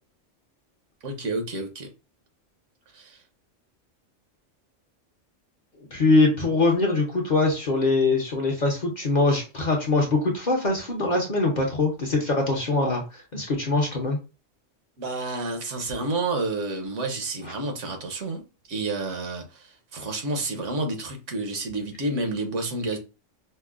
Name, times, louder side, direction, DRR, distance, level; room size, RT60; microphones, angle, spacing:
voice 1, 1.0-1.9 2.9-3.2 15.0-18.4 18.7-23.0, right 2 dB, 75° right, 1.2 m, -30 dB
voice 2, 5.9-13.0 13.3-14.2, left 2 dB, 45° left, 0.7 m, -22 dB
5.2 x 2.0 x 2.3 m
omnidirectional pair, 1.3 m